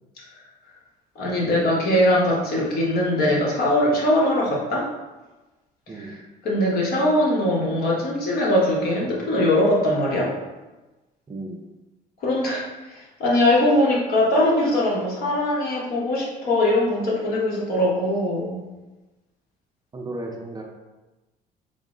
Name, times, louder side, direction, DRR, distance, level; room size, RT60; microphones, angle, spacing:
voice 1, 1.1-4.9 5.9-6.1 6.4-10.3 12.2-18.6, left 1 dB, 65° left, -4 dB, 1.1 m, -21 dB
voice 2, 11.3-11.7 19.9-20.6, right 2 dB, 25° right, 1 dB, 0.4 m, -34 dB
3.7 x 2.0 x 3.7 m, 1.1 s
cardioid pair, 110°, 17 cm